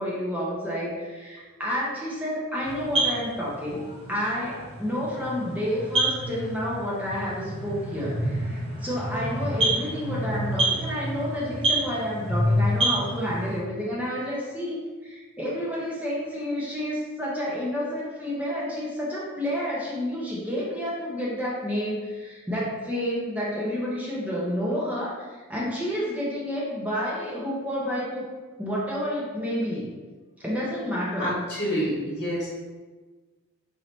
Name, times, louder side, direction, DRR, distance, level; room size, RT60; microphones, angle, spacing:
voice 1, 0.0-3.8 4.1-28.3 28.6-29.9 30.4-31.3 31.7-31.9, equal, 5° right, -7 dB, 0.7 m, -30 dB
sound 1, 2.6-13.6, right 1 dB, 25° right, 1.0 m, -28 dB
voice 2, 31.2-32.5, equal, 35° left, -9 dB, 1.3 m, -27 dB
4.0 x 2.7 x 3.2 m, 1.3 s
head